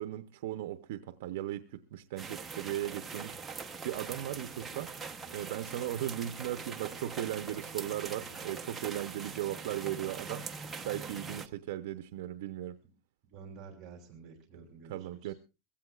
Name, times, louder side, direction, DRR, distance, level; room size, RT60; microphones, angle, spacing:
voice 1, 0.0-3.6 3.8-12.8 14.9-15.3, right 13 dB, 65° right, 0.7 m, -37 dB
sound 1, 2.2-11.5, right 5 dB, 10° right, 0.8 m, -42 dB
voice 2, 13.3-15.3, right 5 dB, 25° right, 2.9 m, -50 dB
22.5 x 16.0 x 2.4 m
supercardioid pair, 180°, 0 cm